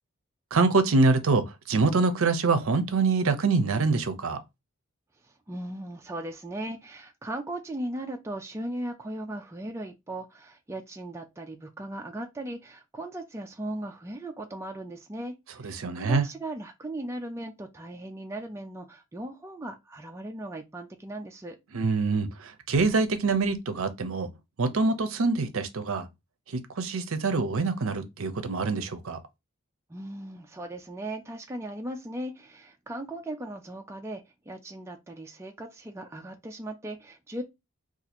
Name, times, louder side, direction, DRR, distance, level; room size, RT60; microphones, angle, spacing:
voice 1, 0.5-4.4 15.6-16.3 21.7-24.3 24.6-26.1 26.5-29.2, right 3 dB, 70° right, 0.6 m, -25 dB
voice 2, 5.5-15.3 15.6-21.6 29.9-37.4, right 1 dB, 10° right, 0.3 m, -38 dB
2.7 x 2.4 x 4.2 m
head